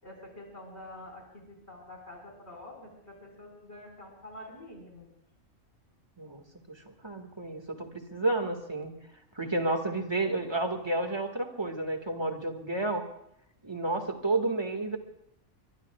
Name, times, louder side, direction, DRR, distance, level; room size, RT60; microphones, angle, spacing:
voice 1, 0.0-5.1, left 1 dB, 50° left, 1 dB, 5.5 m, -47 dB
voice 2, 6.2-8.9 9.4-13.1 13.6-15.0, right 2 dB, 20° right, 4 dB, 1.9 m, -31 dB
23.5 x 22.5 x 2.4 m, 0.77 s
omnidirectional pair, 1.5 m